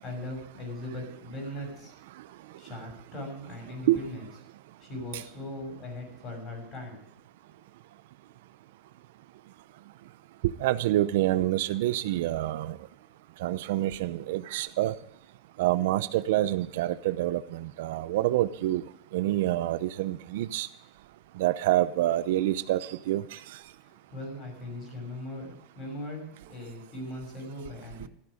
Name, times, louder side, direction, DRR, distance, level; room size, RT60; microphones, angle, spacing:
voice 1, 0.0-2.0 2.6-4.3 4.8-7.0 23.8-28.1, left 1 dB, 30° left, 2 dB, 6.1 m, -39 dB
voice 2, 10.6-12.7 13.4-14.9 15.6-18.8 19.1-20.7 21.4-23.2, right 14 dB, 70° right, 14 dB, 0.7 m, -27 dB
14.0 x 12.0 x 5.1 m, 0.69 s
supercardioid pair, 170°, 0 cm